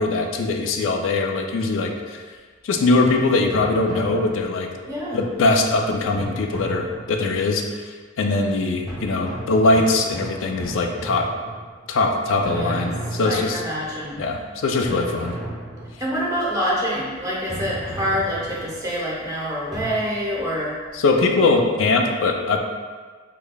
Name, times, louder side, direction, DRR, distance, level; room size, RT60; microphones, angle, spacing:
voice 1, 0.0-2.2 2.6-4.7 5.1-11.3 11.9-13.6 14.2-15.4 20.9-22.6, left 3 dB, 70° left, 3 dB, 0.4 m, -21 dB
sound 1, 3.5-4.9 6.1-7.4 8.9-12.0 12.4-13.9 14.8-16.2 17.5-18.9 19.7-19.9, right 1 dB, ahead, 1.4 m, -34 dB
voice 2, 4.9-5.2 12.5-12.9 13.2-14.2 16.0-20.7, equal, 15° right, -6 dB, 0.8 m, -26 dB
4.9 x 2.3 x 2.3 m, 1.5 s
head